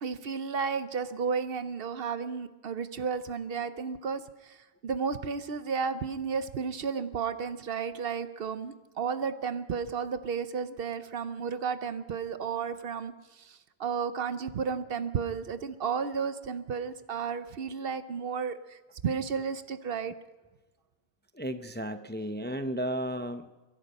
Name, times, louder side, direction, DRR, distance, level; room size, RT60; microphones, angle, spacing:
voice 1, 0.0-20.2, right 6 dB, 65° right, 12 dB, 0.9 m, -33 dB
voice 2, 21.3-23.7, right 1 dB, 15° left, 9 dB, 0.5 m, -34 dB
23.5 x 11.0 x 5.4 m, 1.2 s
omnidirectional pair, 1.1 m